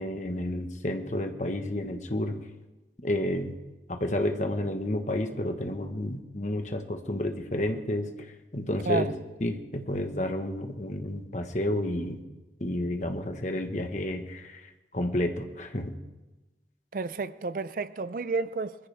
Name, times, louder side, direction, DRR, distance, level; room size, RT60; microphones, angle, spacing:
voice 1, 0.0-2.4 3.0-3.6 3.9-8.1 8.5-9.1 9.4-12.2 12.6-16.0, left 1 dB, 40° left, 1.3 m, -30 dB
voice 2, 16.9-18.8, right 3 dB, 50° right, 0.4 m, -30 dB
21.5 x 14.5 x 3.5 m
head